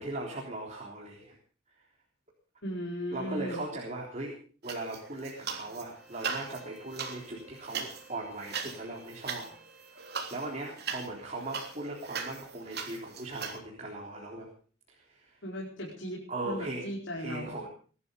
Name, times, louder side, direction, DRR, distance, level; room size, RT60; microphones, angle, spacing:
voice 1, 0.0-1.4 3.1-9.5 9.8-14.5 14.9-15.4 16.3-17.7, right 2 dB, 35° right, -1 dB, 3.7 m, -39 dB
voice 2, 2.6-3.6 15.4-17.6, equal, 65° left, -2 dB, 4.9 m, -37 dB
sound 1, 4.7-5.8 6.1-13.6, right 6 dB, 55° right, 3.4 m, -39 dB
Bowed string instrument, 5.9-10.7, right 3 dB, 5° right, 4.9 m, -57 dB
22.0 x 12.5 x 5.3 m, 0.41 s
head